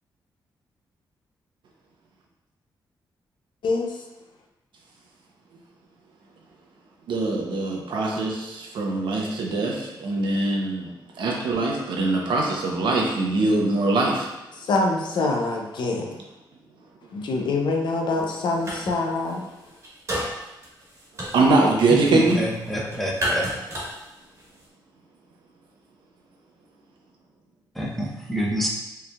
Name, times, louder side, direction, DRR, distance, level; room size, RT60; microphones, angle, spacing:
voice 1, 7.1-14.3 21.3-22.4, right 2 dB, 85° right, -1 dB, 0.8 m, -22 dB
voice 2, 14.6-16.1 17.1-19.4, left 3 dB, 75° left, 2 dB, 0.6 m, -25 dB
sound 1, 18.2-19.0 19.2-24.6, equal, 40° right, 1.3 m, -32 dB
voice 3, 21.9-23.5 27.8-28.7, equal, ahead, -2 dB, 0.7 m, -27 dB
4.5 x 3.2 x 2.3 m, 0.97 s
cardioid pair, 100°, 8 cm